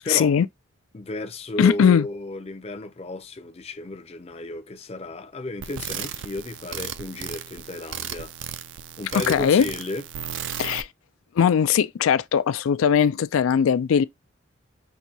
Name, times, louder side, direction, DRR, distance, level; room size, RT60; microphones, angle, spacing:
voice 1, 0.1-0.5 1.6-2.1 9.3-9.6 10.6-10.9 11.4-14.0, left 7 dB, 85° left, 0.3 m, -19 dB
voice 2, 0.9-8.3 9.0-10.0, left 2 dB, 30° left, 0.5 m, -33 dB
sound 1, 5.6-10.8, right 9 dB, 65° right, 0.4 m, -35 dB
5.8 x 2.7 x 2.7 m
head